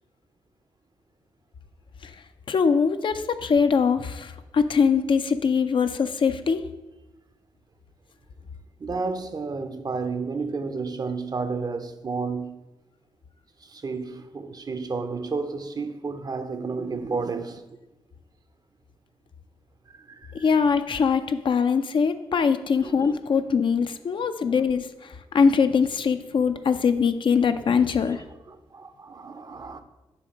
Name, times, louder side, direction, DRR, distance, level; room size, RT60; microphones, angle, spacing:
voice 1, 2.5-6.6 20.3-24.9 25.3-28.2, left 6 dB, 55° left, 0.4 m, -22 dB
voice 2, 8.8-12.6 13.6-17.6 19.9-20.4 22.8-22.9 24.2-24.5 28.5-29.8, right 4 dB, 40° right, 0.6 m, -31 dB
7.0 x 2.9 x 5.1 m
cardioid pair, 50°, 10 cm